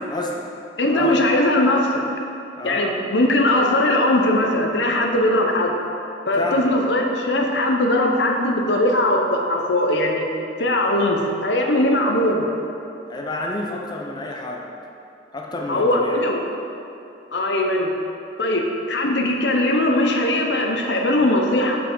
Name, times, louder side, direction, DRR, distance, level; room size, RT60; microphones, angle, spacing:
voice 1, 0.1-0.5 0.9-1.2 2.6-2.9 6.4-6.7 13.1-14.6 15.3-16.2, left 2 dB, 25° left, -1 dB, 0.8 m, -29 dB
voice 2, 0.8-2.0 2.6-5.7 6.3-10.2 10.6-12.5 15.7-16.4 17.3-17.9 18.4-18.6 18.9-21.8, left 1 dB, 75° left, 2 dB, 0.8 m, -20 dB
6.1 x 5.9 x 6.2 m, 2.9 s
head